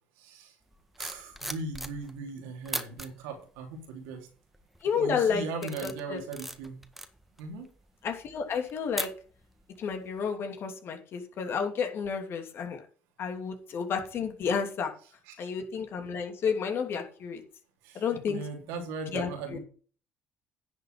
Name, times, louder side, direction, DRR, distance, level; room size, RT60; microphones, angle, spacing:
voice 1, 0.2-0.5 1.0-4.3 5.0-6.8 7.4-7.7 15.3-15.5 17.8-19.6, right 4 dB, 85° right, 3 dB, 3.1 m, -38 dB
sound 1, 0.7-2.3 2.6-3.1 3.7-4.1 4.5-4.9 5.3-9.6 9.9-10.2, equal, 5° right, 1.6 m, -39 dB
voice 2, 4.8-5.4 5.8-6.2 8.0-9.1 9.8-12.8 13.2-14.9 15.4-17.4 17.9-18.4 19.1-19.6, left 6 dB, 60° left, 4 dB, 2.9 m, -31 dB
10.5 x 7.1 x 4.8 m, 0.41 s
hypercardioid pair, 65°, 5 cm